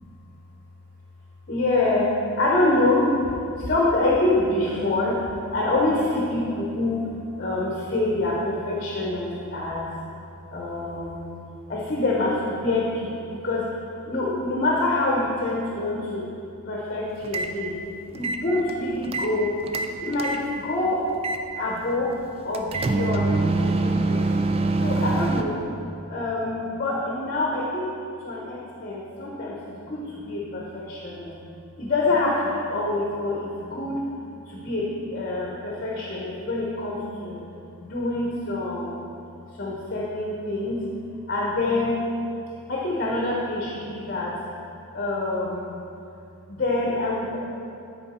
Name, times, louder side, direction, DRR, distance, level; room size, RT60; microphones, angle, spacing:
voice 1, 1.5-5.2 5.5-7.0 7.4-9.9 10.5-11.3 11.7-13.7 14.0-16.3 16.7-17.7 18.1-19.5 20.0-21.0 21.5-22.1 22.4-24.3 24.8-25.6 26.1-27.9 28.2-31.3 31.8-34.0 34.5-37.4 37.8-39.0 39.6-40.8 41.3-42.0 42.7-44.3 44.9-45.7 46.5-47.4, left 2 dB, 40° left, -4 dB, 0.9 m, -26 dB
sound 1, 17.2-17.5 18.1-19.3 19.6-20.4 21.2-21.4 22.5-25.4, right 3 dB, 25° right, 0.3 m, -24 dB
9.6 x 4.6 x 4.3 m, 2.6 s
head